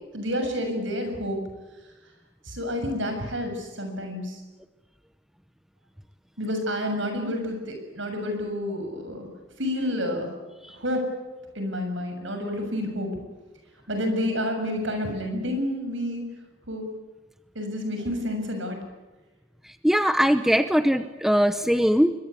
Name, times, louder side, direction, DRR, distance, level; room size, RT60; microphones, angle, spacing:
voice 1, 0.1-1.4 2.5-4.4 6.4-9.3 9.6-10.3 10.7-11.1 11.5-13.1 13.9-16.3 16.7-16.8 17.6-18.8, left 1 dB, 70° right, 5 dB, 7.1 m, -29 dB
voice 2, 19.8-22.1, equal, ahead, 10 dB, 0.8 m, -21 dB
26.0 x 22.0 x 8.4 m, 1.2 s
head